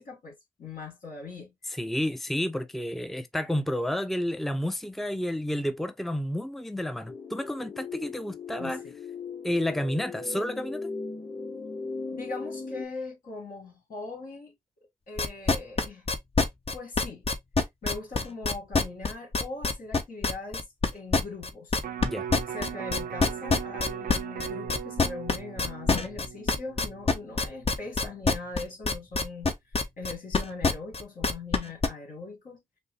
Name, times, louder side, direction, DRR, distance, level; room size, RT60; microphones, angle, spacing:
voice 1, 0.0-1.7 8.6-9.0 12.1-14.6 15.1-16.1 16.7-17.3 17.8-20.7 20.9-21.8 22.5-32.6, left 3 dB, 70° left, 1.9 m, -41 dB
voice 2, 1.8-8.8 9.4-10.9 22.0-22.3, left 1 dB, ahead, 0.5 m, -30 dB
sound 1, 7.1-12.9, left 3 dB, 20° left, 1.1 m, -38 dB
sound 2, 15.2-22.0 22.3-31.9, left 4 dB, 40° left, 0.9 m, -25 dB
Electric guitar, 21.8-28.0 28.4-28.5, right 8 dB, 85° right, 0.6 m, -39 dB
5.2 x 2.1 x 3.0 m
supercardioid pair, 45°, 15 cm